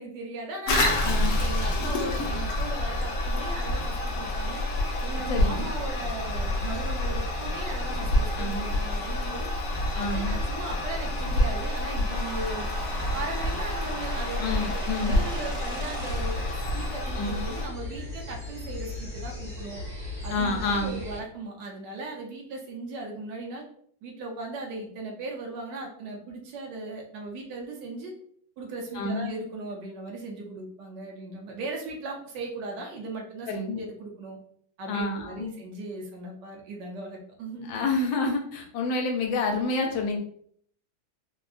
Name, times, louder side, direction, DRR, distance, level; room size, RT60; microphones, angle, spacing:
voice 1, 0.0-4.6 5.0-9.5 9.9-12.7 13.1-19.8 20.2-23.6 24.0-28.1 28.6-34.4 34.8-37.7, right 2 dB, 70° right, 0 dB, 1.2 m, -38 dB
Toilet flush, 0.7-17.7, left 1 dB, 65° left, 0.9 m, -28 dB
voice 2, 1.0-1.4 5.3-5.7 8.4-8.7 9.9-10.3 14.4-15.2 17.2-17.4 20.3-21.0 28.9-29.3 33.5-33.8 34.9-35.5 37.6-40.2, left 3 dB, 80° left, 2 dB, 1.3 m, -28 dB
sound 1, 12.1-16.5, right 2 dB, 55° right, 1.5 m, -40 dB
sound 2, 16.0-21.2, left 2 dB, 30° right, 1.5 m, -37 dB
3.6 x 2.3 x 2.4 m, 0.62 s
omnidirectional pair, 2.1 m